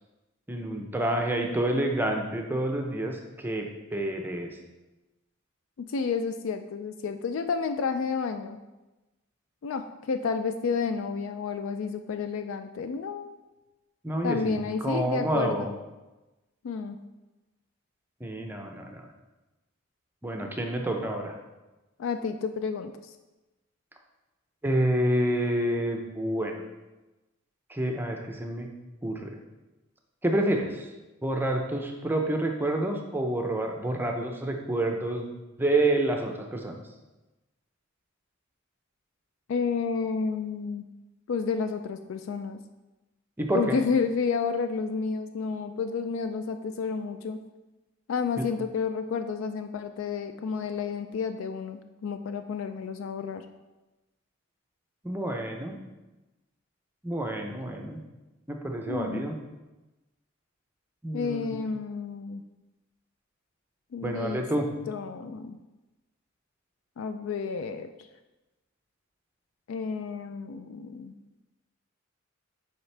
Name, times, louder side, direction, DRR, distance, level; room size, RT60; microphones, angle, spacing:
voice 1, 0.5-3.6 3.9-4.5 14.0-15.7 18.2-19.0 20.2-21.3 24.6-26.6 27.7-28.7 29.0-29.4 30.2-30.9 31.2-35.3 35.6-36.8 43.4-43.8 48.4-48.5 55.0-55.8 57.0-58.0 58.5-59.4 61.0-61.5 64.0-64.7, right 1 dB, 10° right, 2 dB, 0.5 m, -28 dB
voice 2, 5.8-8.6 9.6-13.5 14.2-15.7 16.6-17.0 22.0-22.9 39.5-40.8 41.3-42.6 43.5-47.4 48.1-53.5 58.9-59.2 61.1-62.4 63.9-64.5 64.9-65.6 67.0-67.9 69.7-71.1, left 5 dB, 70° left, 8 dB, 0.3 m, -30 dB
7.1 x 4.9 x 3.3 m, 1.1 s
head